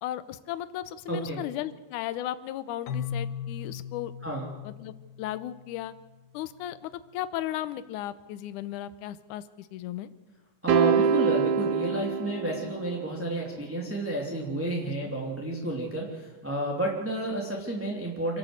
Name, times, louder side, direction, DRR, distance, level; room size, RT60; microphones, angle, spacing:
voice 1, 0.0-4.1 4.6-5.9 6.3-10.1 14.9-15.1, left 12 dB, 70° left, 13 dB, 2.1 m, -36 dB
voice 2, 1.1-1.4 4.2-4.5 10.6-18.4, right 1 dB, 5° right, -2 dB, 2.3 m, -31 dB
Keyboard (musical), 2.9-6.6, left 7 dB, 90° left, 2.9 m, -38 dB
sound 1, 10.7-13.1, right 6 dB, 70° right, 2.3 m, -25 dB
27.0 x 12.5 x 8.0 m, 1.2 s
omnidirectional pair, 4.0 m